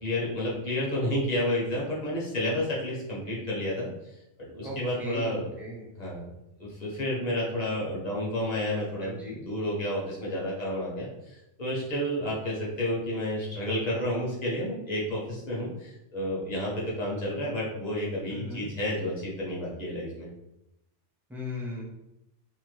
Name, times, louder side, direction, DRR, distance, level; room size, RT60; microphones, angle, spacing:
voice 1, 0.0-4.2 4.5-5.5 6.0-6.3 6.6-20.3, left 1 dB, 40° left, -5 dB, 0.8 m, -31 dB
voice 2, 4.6-5.9 9.0-9.4 18.3-18.6 21.3-21.8, left 1 dB, ahead, -6 dB, 0.4 m, -37 dB
2.8 x 2.1 x 3.1 m, 0.88 s
omnidirectional pair, 1.2 m